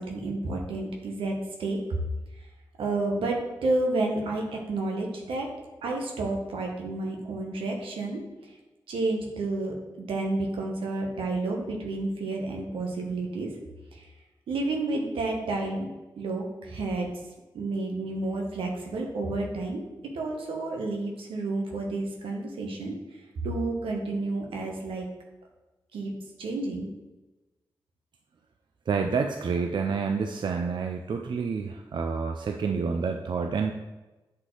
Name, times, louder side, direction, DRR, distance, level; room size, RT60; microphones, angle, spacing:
voice 1, 0.0-1.8 2.8-5.5 5.8-8.2 8.9-13.5 13.9-14.0 14.5-15.9 16.2-17.1 17.5-19.8 20.1-22.9 23.4-25.1 25.9-26.1 26.4-26.8, right 2 dB, 85° right, 1 dB, 1.1 m, -30 dB
voice 2, 28.9-33.7, right 5 dB, 60° right, 4 dB, 0.4 m, -28 dB
8.4 x 3.8 x 3.2 m, 1.1 s
supercardioid pair, 45°, 9 cm